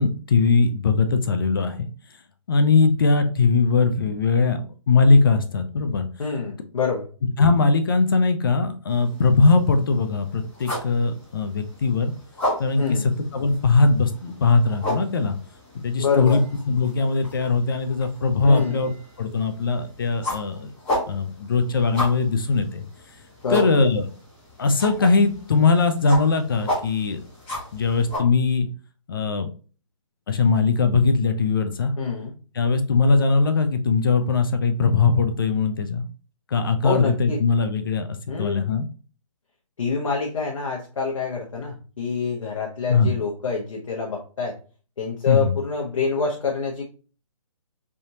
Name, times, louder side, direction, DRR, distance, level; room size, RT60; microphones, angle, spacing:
voice 1, 0.0-1.9 2.5-4.6 4.9-6.1 7.4-12.1 12.6-12.8 13.3-15.3 15.8-16.4 16.7-18.9 19.2-20.7 21.1-22.8 23.5-24.0 24.6-27.2 27.7-28.7 29.1-29.5 30.3-31.9 32.6-36.0 36.5-38.1 38.4-38.9 42.9-43.1 45.3-45.5, left 4 dB, 45° left, 8 dB, 0.4 m, -20 dB
voice 2, 6.2-7.1 12.8-13.1 16.0-16.4 18.4-18.9 23.4-23.8 32.0-32.3 36.8-37.4 38.3-38.7 39.8-44.6 45.0-46.8, left 5 dB, 70° left, -1 dB, 0.9 m, -26 dB
sound 1, 8.9-28.2, left 1 dB, 10° left, 1.0 m, -34 dB
3.4 x 2.7 x 2.7 m, 0.38 s
hypercardioid pair, 165°, 17 cm